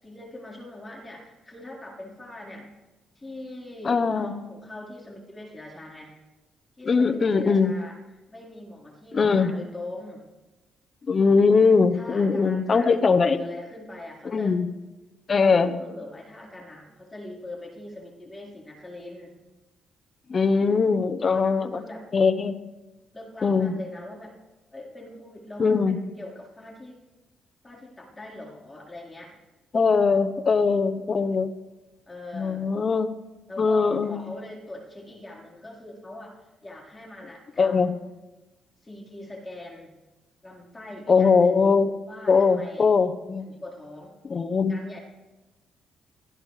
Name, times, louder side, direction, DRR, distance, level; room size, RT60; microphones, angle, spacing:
voice 1, 0.0-2.7 3.1-6.1 6.8-8.0 8.3-10.2 11.9-12.9 13.3-14.6 15.3-19.3 21.3-22.1 23.1-24.4 24.7-27.0 27.6-29.4 32.1-32.7 33.5-36.4 36.6-37.9 38.8-39.9 40.4-41.6 42.0-42.9 43.4-44.2 44.7-45.0, left 1 dB, 20° left, -2 dB, 4.4 m, -42 dB
voice 2, 3.8-4.3 6.8-7.7 9.1-9.6 11.1-13.4 14.2-14.7 15.3-15.7 20.3-21.8 22.1-22.5 23.4-23.7 25.6-26.0 29.7-31.5 32.3-33.1 33.6-34.2 37.6-37.9 41.1-41.9 42.3-43.4 44.3-44.8, left 5 dB, 40° left, 10 dB, 1.1 m, -21 dB
23.0 x 15.5 x 3.4 m, 1.1 s
cardioid pair, 90°, 0 cm